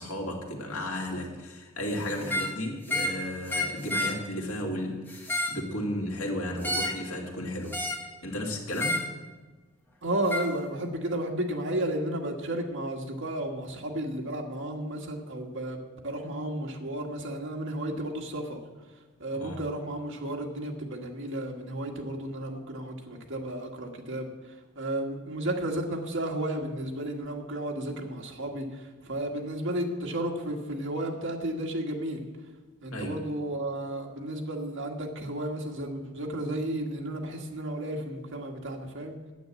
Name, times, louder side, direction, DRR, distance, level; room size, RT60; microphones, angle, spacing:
voice 1, 0.0-7.8 8.2-9.0 19.3-19.6 32.9-33.2, left 1 dB, 75° left, 0 dB, 2.3 m, -34 dB
sound 1, 2.2-2.5 2.9-3.2 3.5-4.2 5.1-5.6 6.6-7.0 7.7-8.1 8.7-9.1 10.3-10.5, left 1 dB, 10° left, 1.3 m, -30 dB
voice 2, 10.0-18.6 19.2-24.3 24.8-32.3 32.8-39.2, right 1 dB, 60° right, 1 dB, 1.8 m, -33 dB
9.4 x 9.4 x 7.6 m, 1.3 s
head